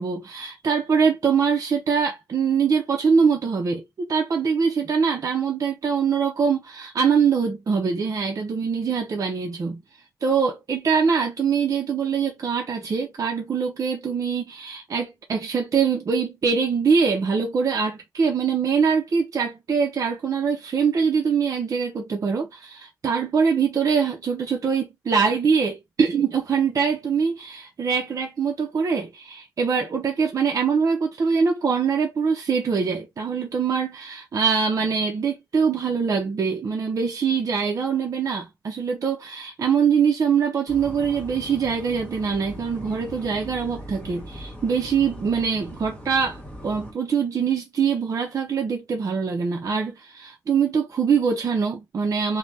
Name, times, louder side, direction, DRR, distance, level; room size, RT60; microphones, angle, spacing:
voice 1, 0.0-9.8 10.2-52.4, right 6 dB, 55° right, 0.5 m, -23 dB
sound 1, 40.7-46.9, equal, 20° left, 1.5 m, -40 dB
3.2 x 2.1 x 2.6 m
wide cardioid pair, 115°, 7 cm